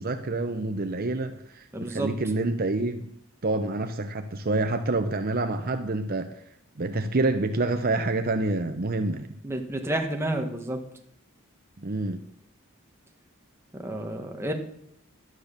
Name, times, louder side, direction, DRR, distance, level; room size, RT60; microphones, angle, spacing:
voice 1, 0.0-3.1 3.4-6.3 6.8-9.3 11.8-12.2, right 2 dB, 45° right, 7 dB, 0.7 m, -27 dB
voice 2, 1.7-2.1 9.4-10.8 13.7-14.5, right 1 dB, 10° right, 3 dB, 1.4 m, -30 dB
12.0 x 9.5 x 6.7 m, 0.73 s
head